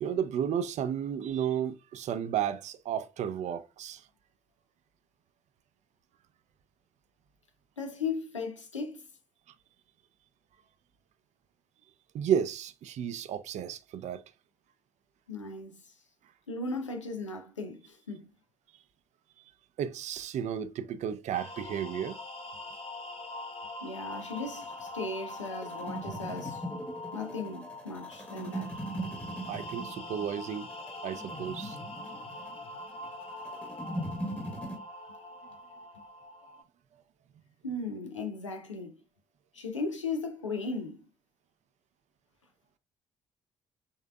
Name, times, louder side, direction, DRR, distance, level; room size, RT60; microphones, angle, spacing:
voice 1, 0.0-4.0 12.1-14.2 19.8-22.2 29.5-30.7 31.0-31.8, right 9 dB, 50° right, 0.5 m, -32 dB
voice 2, 7.8-9.0 15.3-15.9 16.5-18.3 23.8-26.6 27.1-28.7 37.6-39.0 39.5-41.1, left 3 dB, 85° left, 0.6 m, -37 dB
sound 1, 21.3-36.6, left 2 dB, 35° left, 0.9 m, -43 dB
sound 2, 24.1-34.8, right 1 dB, 10° left, 1.1 m, -40 dB
5.4 x 3.6 x 2.2 m
figure-of-eight pair, 45°, 15 cm